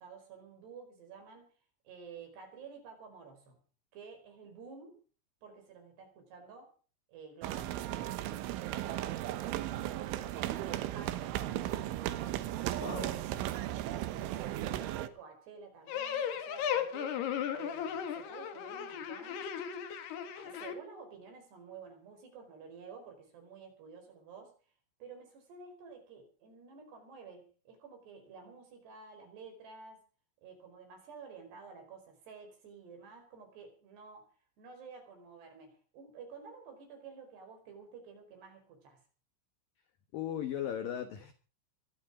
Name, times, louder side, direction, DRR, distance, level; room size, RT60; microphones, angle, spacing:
voice 1, 0.0-1.5 1.8-3.6 3.9-5.0 5.4-6.7 7.1-9.2 9.5-12.4 12.7-17.2 17.5-19.4 20.3-24.5 25.0-30.0 30.4-34.3 34.6-39.0, right 5 dB, 55° right, 5 dB, 6.5 m, -51 dB
sound 1, 7.4-15.1, right 14 dB, 75° right, 3.4 m, -36 dB
voice 2, 12.8-13.1 40.1-41.3, left 10 dB, 75° left, 9 dB, 2.0 m, -37 dB
sound 2, 15.9-20.7, left 8 dB, 60° left, 3.4 m, -36 dB
23.5 x 12.0 x 5.0 m, 0.38 s
omnidirectional pair, 5.9 m